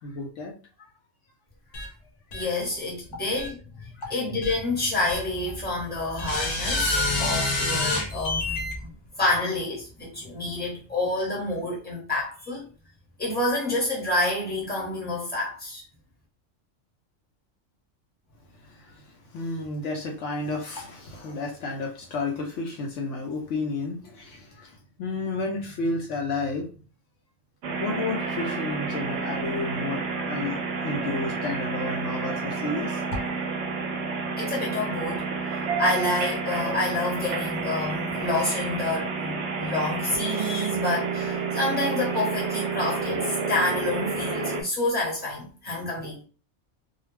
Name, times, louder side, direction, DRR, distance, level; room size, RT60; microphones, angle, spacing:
voice 1, 0.0-0.5 0.8-0.9 1.8-1.9 4.0-4.2 18.6-26.7 27.8-33.3, left 3 dB, 70° left, 0.9 m, -32 dB
sound 1, 1.7-1.9 2.3-2.4 3.4-3.5 4.4-4.5 5.1-5.2 6.2-8.7, left 2 dB, 50° left, 0.5 m, -27 dB
voice 2, 2.3-3.6 4.1-8.9 9.2-12.6 13.2-15.8 34.4-35.3 35.5-46.2, left 2 dB, 10° left, 1.0 m, -28 dB
sound 2, 27.6-44.6, right 4 dB, 65° right, 0.8 m, -30 dB
2.3 x 2.2 x 3.2 m
omnidirectional pair, 1.3 m